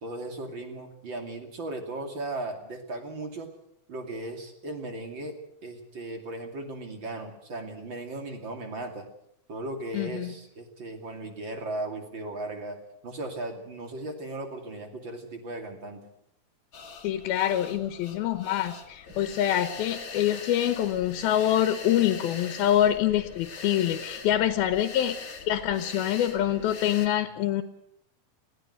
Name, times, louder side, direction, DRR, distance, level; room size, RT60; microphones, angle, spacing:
voice 1, 0.0-3.5 3.9-5.3 5.6-9.1 9.5-12.8 13.0-16.0, right 2 dB, 35° right, 5 dB, 2.8 m, -37 dB
voice 2, 9.9-10.3 17.0-25.2 25.5-27.6, left 11 dB, 80° left, 10 dB, 2.9 m, -25 dB
sound 1, 16.7-27.1, left 5 dB, 35° left, 2.4 m, -42 dB
20.5 x 16.0 x 8.0 m, 0.75 s
omnidirectional pair, 4.4 m